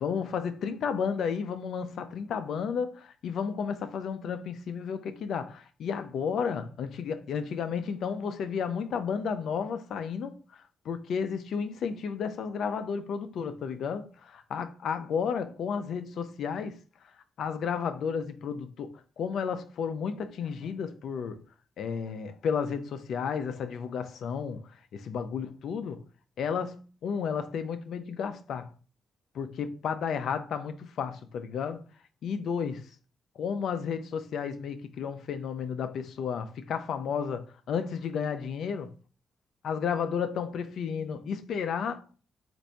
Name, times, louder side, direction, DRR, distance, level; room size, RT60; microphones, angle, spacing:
voice 1, 0.0-10.4 10.8-14.1 14.5-16.8 17.4-21.4 21.8-26.0 26.4-28.7 29.3-31.8 32.2-32.9 33.4-38.9 39.6-42.0, left 6 dB, 75° left, 0.6 m, -32 dB
4.0 x 2.7 x 4.5 m
cardioid pair, 75°, 0 cm